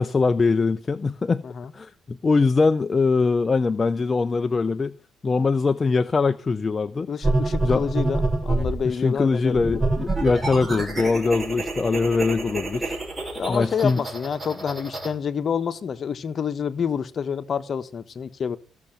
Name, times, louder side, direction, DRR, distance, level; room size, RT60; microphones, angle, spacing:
voice 1, 0.0-1.4 1.7-5.0 5.2-7.1 7.6-7.8 8.8-13.0 13.5-14.0, left 4 dB, 30° left, 0.6 m, -22 dB
voice 2, 7.1-9.8 13.3-18.6, left 7 dB, 50° left, 1.2 m, -28 dB
sound 1, 7.2-8.8 9.5-15.1, right 2 dB, 25° right, 5.8 m, -27 dB
15.0 x 6.9 x 9.0 m
cardioid pair, 90°, 0 cm